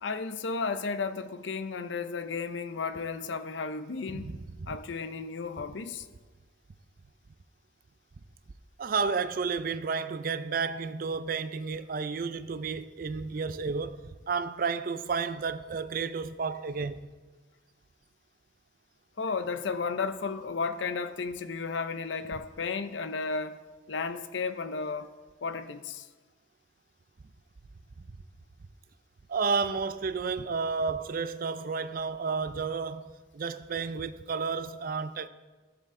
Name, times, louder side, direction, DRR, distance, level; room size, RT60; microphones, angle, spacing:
voice 1, 0.0-4.3 4.7-6.1 19.2-23.6 23.9-25.1 25.4-26.1, left 4 dB, 75° left, 0.6 m, -33 dB
voice 2, 4.1-4.8 8.8-17.1 22.3-22.4 28.1-28.2 29.3-35.3, right 5 dB, 50° right, 0.4 m, -32 dB
14.0 x 6.8 x 3.7 m
head